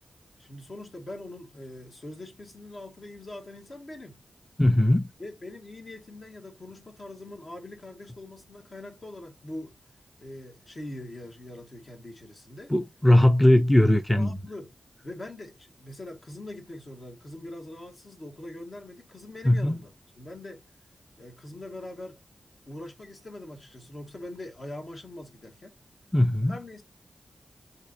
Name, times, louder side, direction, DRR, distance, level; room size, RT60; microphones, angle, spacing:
voice 1, 0.4-4.2 5.2-9.7 10.2-12.7 14.1-14.7 15.0-20.6 21.2-22.2 22.7-25.8 26.5-26.8, left 1 dB, 55° left, 1.8 m, -42 dB
voice 2, 4.6-5.1 12.7-14.3 19.4-19.8 26.1-26.5, left 1 dB, 10° left, 0.7 m, -19 dB
5.4 x 3.4 x 2.8 m
cardioid pair, 55°, 0 cm